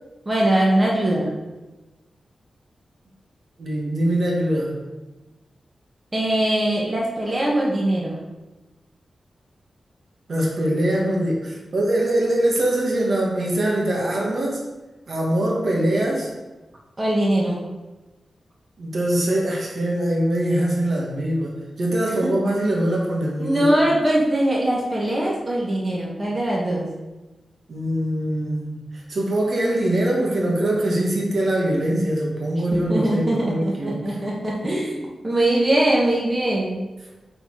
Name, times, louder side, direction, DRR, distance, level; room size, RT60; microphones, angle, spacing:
voice 1, 0.2-1.3 6.1-8.2 17.0-17.6 22.2-22.3 23.4-26.9 32.7-36.9, right 1 dB, 20° right, -4 dB, 1.4 m, -21 dB
voice 2, 3.6-4.7 10.3-14.6 15.1-16.3 18.8-23.7 27.7-34.2, right 1 dB, 55° right, -2 dB, 1.6 m, -23 dB
8.6 x 4.1 x 4.8 m, 1.1 s
wide cardioid pair, 140°, 0 cm